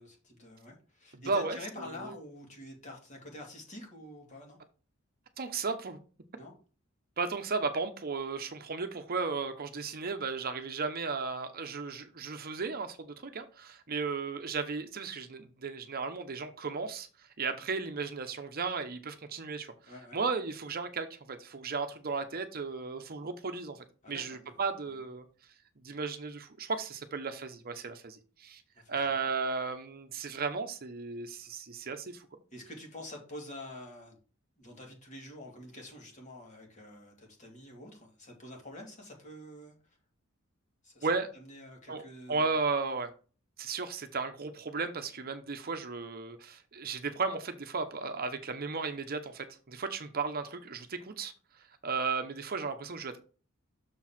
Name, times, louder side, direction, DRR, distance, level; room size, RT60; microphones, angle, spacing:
voice 1, 0.0-4.6 6.4-6.5 19.8-20.2 24.0-25.0 28.7-29.1 32.5-34.2 34.6-40.0 40.8-41.1 41.3-42.6, left 1 dB, 35° left, 2.6 m, -47 dB
voice 2, 1.3-1.6 5.4-6.0 7.2-17.1 17.4-19.7 20.1-25.2 25.8-28.6 28.9-32.3 41.0-41.3 41.9-43.1 43.6-51.3 51.8-53.2, right 4 dB, 45° right, 0.9 m, -35 dB
6.7 x 4.7 x 5.8 m
head